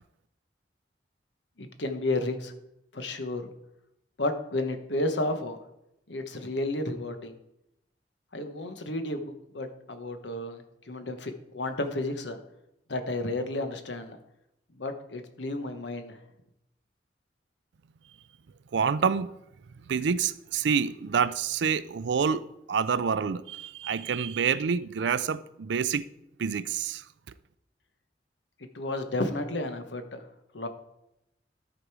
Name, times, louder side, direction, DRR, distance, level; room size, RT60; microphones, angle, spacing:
voice 1, 1.6-2.5 2.9-3.5 4.2-5.6 6.1-7.3 8.3-12.4 12.9-14.2 14.7-16.2 28.6-30.2 30.5-30.7, left 2 dB, 85° left, 1.1 m, -32 dB
voice 2, 18.7-19.3 19.9-26.1 26.4-27.0, right 6 dB, 80° right, 0.4 m, -27 dB
13.0 x 5.1 x 4.8 m
head